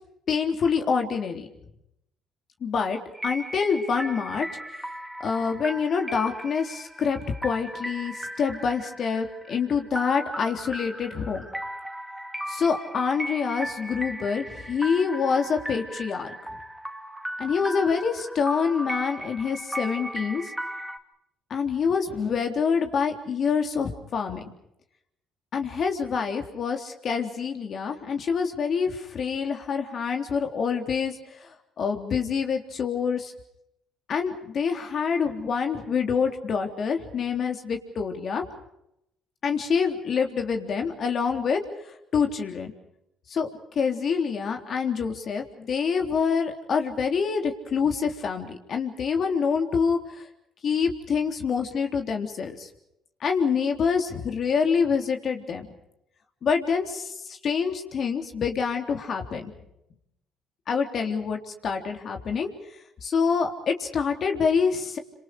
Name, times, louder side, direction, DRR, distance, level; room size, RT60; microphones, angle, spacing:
voice 1, 0.3-1.5 2.6-4.5 5.2-11.4 12.5-16.3 17.4-20.5 21.5-24.4 25.5-33.3 34.1-38.4 39.4-42.7 43.3-43.5 43.8-50.3 50.6-52.7 53.2-55.7 56.4-59.5 60.7-62.5 63.0-65.0, left 6 dB, 55° left, 4 dB, 3.6 m, -26 dB
sound 1, 3.1-21.0, equal, 5° right, 2.2 m, -37 dB
27.5 x 26.5 x 5.1 m, 0.80 s
supercardioid pair, 70°, 0 cm